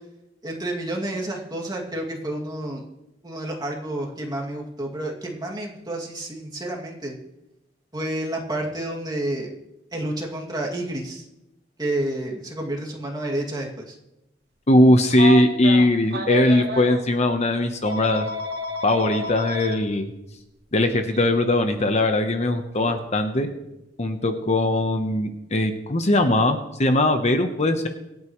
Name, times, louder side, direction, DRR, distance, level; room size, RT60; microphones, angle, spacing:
voice 1, 0.4-2.8 3.2-7.1 7.9-9.5 9.9-11.3 11.8-14.0, right 1 dB, 20° right, -1 dB, 2.3 m, -30 dB
voice 2, 14.7-18.3 18.8-20.1 20.7-23.5 24.0-27.9, left 1 dB, 35° left, 6 dB, 0.9 m, -20 dB
Telephone, 15.1-17.0 17.8-19.7 21.1-21.2 22.8-23.0, equal, 60° right, 2.1 m, -30 dB
25.5 x 9.3 x 3.1 m, 0.91 s
head